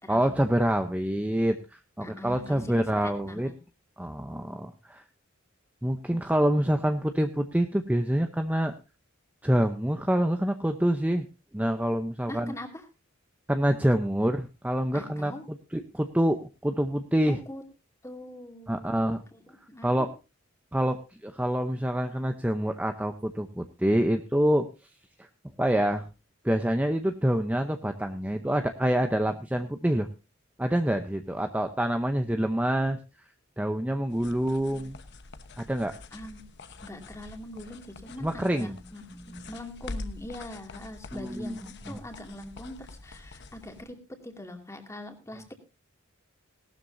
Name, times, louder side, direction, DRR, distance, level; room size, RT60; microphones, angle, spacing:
voice 1, 0.1-3.5 4.0-5.0 5.8-8.7 9.4-11.3 11.5-12.5 13.5-17.4 18.7-19.2 19.8-20.1 20.7-24.7 25.2-25.3 25.6-26.0 26.4-30.1 30.6-33.0 33.6-35.0 35.6-35.9 38.2-38.7 39.3-39.4 41.1-41.6 41.9-42.0, right 1 dB, 5° right, 7 dB, 0.7 m, -26 dB
voice 2, 2.0-3.6 12.3-12.8 14.9-15.4 17.3-17.6 18.0-20.1 36.1-36.4 36.8-45.5, left 1 dB, 15° left, 4 dB, 2.4 m, -42 dB
sound 1, 34.1-43.8, left 3 dB, 55° left, 1.0 m, -45 dB
18.0 x 12.5 x 2.6 m, 0.28 s
head